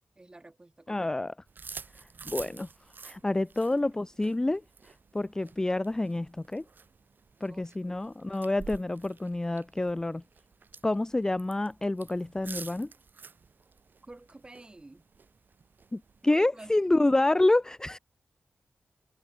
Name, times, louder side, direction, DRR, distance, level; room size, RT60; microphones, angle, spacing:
voice 1, 0.2-1.1 7.5-8.0 14.0-15.0 16.2-16.9, right 2 dB, 20° right, 3.7 m, -49 dB
voice 2, 0.9-1.3 2.0-2.7 3.0-6.6 7.4-10.2 10.8-12.9 15.9-18.0, left 2 dB, 15° left, 0.4 m, -28 dB
sound 1, 1.5-16.4, right 5 dB, 50° right, 1.6 m, -49 dB
wide cardioid pair, 155°, 4 cm